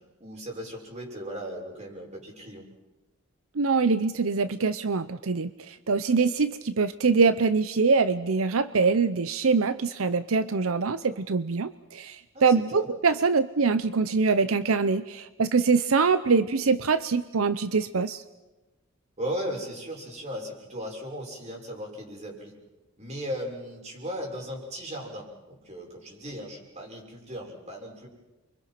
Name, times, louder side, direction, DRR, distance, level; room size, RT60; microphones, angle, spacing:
voice 1, 0.2-2.7 12.3-12.9 19.2-22.6 23.0-28.1, equal, 35° right, 0 dB, 6.1 m, -37 dB
voice 2, 3.5-18.2, right 4 dB, 85° right, 13 dB, 0.7 m, -24 dB
29.5 x 24.5 x 5.9 m, 1.1 s
head